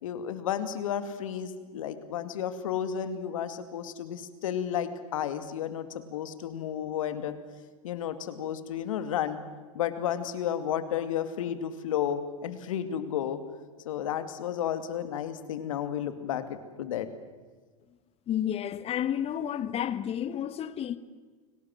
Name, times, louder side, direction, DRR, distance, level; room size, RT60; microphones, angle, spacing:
voice 1, 0.0-7.3 7.8-9.4 9.7-13.4 13.8-17.1, left 9 dB, 75° left, 2.4 m, -32 dB
voice 2, 18.3-21.0, left 10 dB, 35° left, 1.4 m, -31 dB
29.5 x 19.0 x 7.8 m
hypercardioid pair, 95°, 17 cm